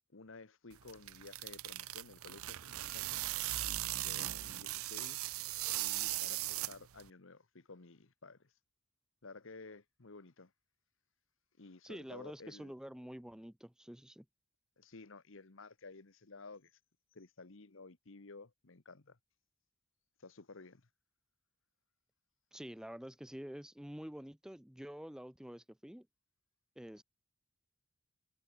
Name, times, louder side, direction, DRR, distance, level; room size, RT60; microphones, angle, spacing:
voice 1, 0.1-3.3 3.9-5.5 5.7-8.5 9.2-10.5 11.6-12.7 14.8-16.8 17.1-19.2 20.2-20.9, left 3 dB, 60° left, 1.2 m, -54 dB
sound 1, 0.7-7.1, right 16 dB, 80° right, 0.6 m, -39 dB
voice 2, 11.8-14.3 22.5-26.1 26.8-27.0, equal, 5° right, 0.5 m, -48 dB
head